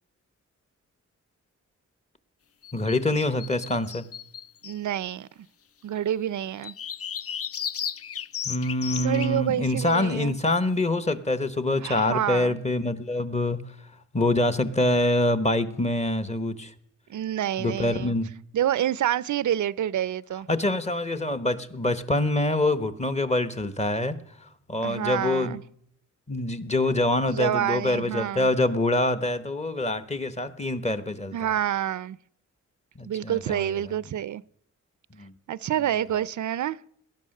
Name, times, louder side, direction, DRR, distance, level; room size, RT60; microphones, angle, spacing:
sound 1, 2.6-4.8 6.6-9.3, left 8 dB, 50° left, 0.5 m, -34 dB
voice 1, 2.7-4.0 8.5-13.6 14.1-16.7 17.6-18.3 20.5-24.2 24.7-25.6 26.3-31.4 33.0-33.8 35.2-35.3, left 2 dB, 20° left, 13 dB, 1.0 m, -25 dB
voice 2, 4.6-5.3 5.8-6.7 9.0-10.4 11.8-12.6 17.1-18.1 18.5-20.5 24.8-25.6 27.3-28.5 31.3-32.2 33.0-34.4 35.5-36.8, right 11 dB, 75° right, 20 dB, 0.5 m, -28 dB
19.0 x 11.0 x 6.6 m, 0.71 s
wide cardioid pair, 125°, 30 cm